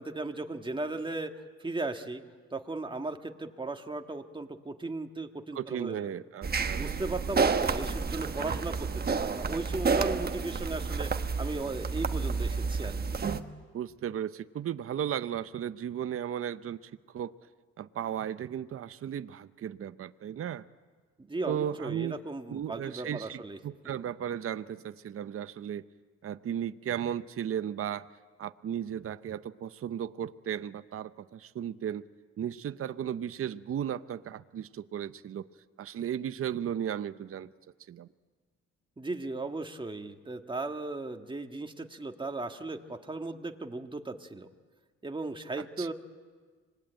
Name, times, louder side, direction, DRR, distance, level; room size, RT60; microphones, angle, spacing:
voice 1, 0.0-1.3 1.6-2.2 2.5-6.1 6.7-11.1 11.4-13.0 21.2-23.6 39.0-44.5 45.0-45.9, right 2 dB, 15° right, 5 dB, 1.7 m, -36 dB
voice 2, 5.5-6.8 13.7-17.3 17.8-20.6 21.5-22.2 22.5-25.8 26.2-28.1 28.4-32.0 32.4-35.5 35.8-37.5 37.9-38.1 45.8-45.9, right 9 dB, 45° right, 13 dB, 0.7 m, -35 dB
sound 1, 6.4-13.4, right 5 dB, 30° right, 1.2 m, -30 dB
25.5 x 20.5 x 9.0 m, 1.5 s
cardioid pair, 90°, 30 cm